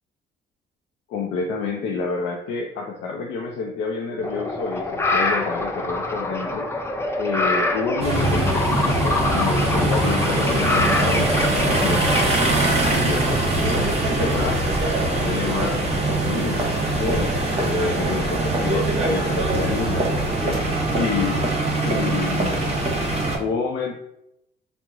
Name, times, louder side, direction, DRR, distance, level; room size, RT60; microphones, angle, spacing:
voice 1, 1.1-6.7 7.2-12.3 12.8-13.8 14.1-17.4 17.7-20.6 20.9-21.5 21.8-22.7 23.4-23.9, left 4 dB, 80° left, 1 dB, 0.4 m, -29 dB
sound 1, 4.2-12.3, left 2 dB, 15° left, 0.4 m, -25 dB
sound 2, 8.0-23.4, right 2 dB, 30° right, 0.8 m, -22 dB
2.9 x 2.0 x 3.5 m, 0.81 s
cardioid pair, 90°, 20 cm